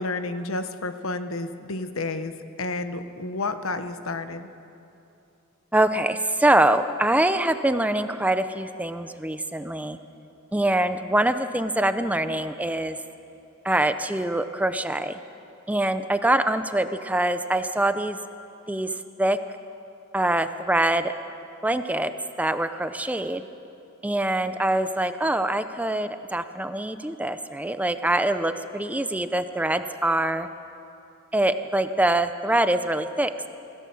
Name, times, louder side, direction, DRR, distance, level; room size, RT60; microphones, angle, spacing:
voice 1, 0.0-4.5, left 2 dB, 85° left, 10 dB, 1.1 m, -31 dB
voice 2, 5.7-10.0 10.5-13.0 13.6-15.2 15.7-18.2 18.7-18.9 19.2-19.4 20.1-21.1 21.6-22.1 22.4-23.4 24.0-30.5 31.3-33.5, right 1 dB, 5° right, 10 dB, 0.6 m, -24 dB
25.0 x 16.0 x 7.2 m, 2.8 s
head